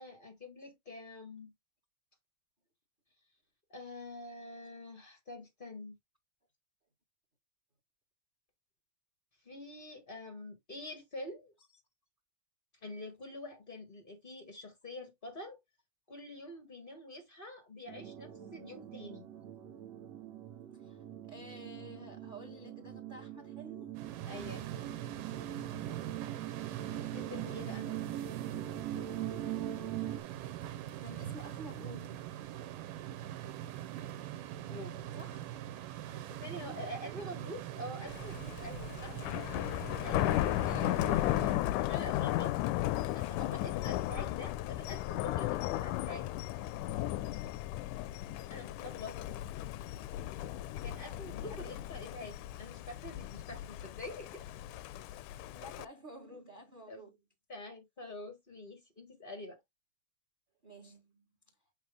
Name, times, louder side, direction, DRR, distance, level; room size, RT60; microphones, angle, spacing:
voice 1, 0.0-1.5 3.7-6.0 9.4-11.5 12.8-15.6 16.1-19.3 24.3-24.6 27.0-27.9 34.6-35.1 36.0-39.2 40.0-40.5 41.6-42.6 43.1-46.3 48.5-49.3 50.8-54.4 56.9-57.0 57.5-59.6, left 1 dB, 55° left, 0.5 m, -46 dB
sound 1, 17.9-30.2, right 12 dB, 65° right, 1.9 m, -42 dB
voice 2, 20.7-24.0 27.4-28.0 31.0-32.3 35.1-35.5 36.6-37.3 40.6-41.1 47.1-47.2 51.4-51.6 55.5-57.2 60.6-61.2, right 1 dB, 35° right, 0.7 m, -51 dB
sound 2, 23.9-41.6, right 12 dB, 85° right, 2.4 m, -43 dB
Thunder, 38.1-55.9, left 15 dB, 80° left, 2.0 m, -35 dB
8.0 x 3.0 x 4.9 m
omnidirectional pair, 3.7 m